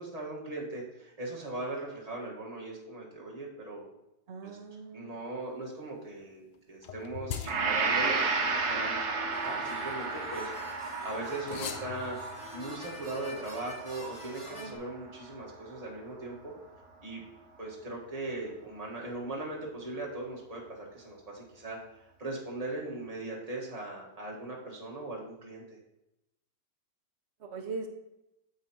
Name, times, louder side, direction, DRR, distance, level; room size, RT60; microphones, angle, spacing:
voice 1, 0.0-3.9 4.4-4.6 4.9-10.5 11.0-12.2 12.5-16.6 17.0-17.2 17.6-25.8, right 2 dB, 20° right, -3 dB, 1.4 m, -39 dB
voice 2, 4.3-5.2 14.5-14.8 27.4-27.9, right 4 dB, 85° right, 4 dB, 0.5 m, -40 dB
sound 1, 6.8-10.6 11.4-13.7, left 7 dB, 70° left, 0.7 m, -44 dB
Gong, 7.5-15.5, right 4 dB, 60° right, 1.4 m, -33 dB
sound 2, 9.3-14.8, equal, 15° left, 2.3 m, -47 dB
8.8 x 7.7 x 2.9 m, 0.88 s
omnidirectional pair, 2.0 m